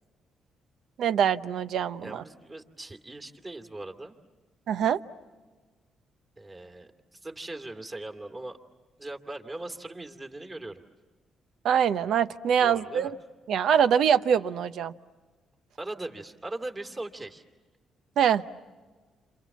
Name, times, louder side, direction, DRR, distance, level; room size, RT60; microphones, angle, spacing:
voice 1, 1.0-2.2 4.7-5.0 11.6-13.2 13.5-14.9 18.2-18.4, right 8 dB, 75° right, 12 dB, 0.8 m, -24 dB
voice 2, 2.0-4.1 6.4-8.6 9.0-10.8 12.6-13.1 15.8-17.4, right 2 dB, 25° right, 5 dB, 2.7 m, -39 dB
29.0 x 27.5 x 7.3 m, 1.3 s
cardioid pair, 90°, 0 cm